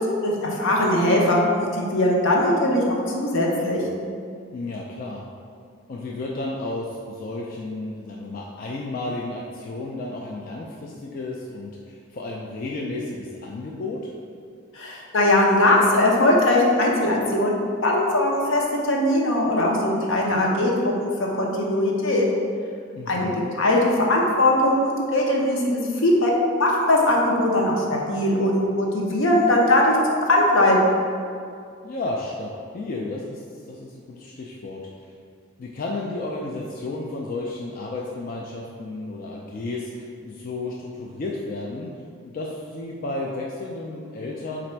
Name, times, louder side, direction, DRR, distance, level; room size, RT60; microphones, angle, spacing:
voice 1, 0.0-3.8 14.7-17.5 17.8-18.6 18.9-22.3 23.1-23.3 23.5-26.3 26.6-30.9, left 1 dB, 70° left, -2 dB, 0.7 m, -20 dB
voice 2, 4.5-5.3 5.9-14.1 22.9-23.5 31.8-35.1 35.6-41.9 42.2-44.7, left 2 dB, 45° left, -3 dB, 0.3 m, -32 dB
4.1 x 2.5 x 4.4 m, 2.3 s
head